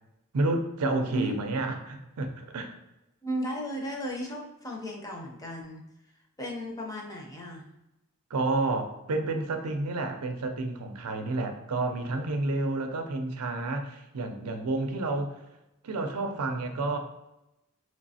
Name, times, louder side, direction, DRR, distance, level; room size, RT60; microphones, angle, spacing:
voice 1, 0.3-2.8 8.3-15.4 15.8-17.0, right 2 dB, 90° right, 5 dB, 0.5 m, -30 dB
voice 2, 3.2-5.8 6.4-7.6, equal, 15° left, -1 dB, 0.6 m, -35 dB
3.1 x 3.0 x 2.7 m, 0.92 s
head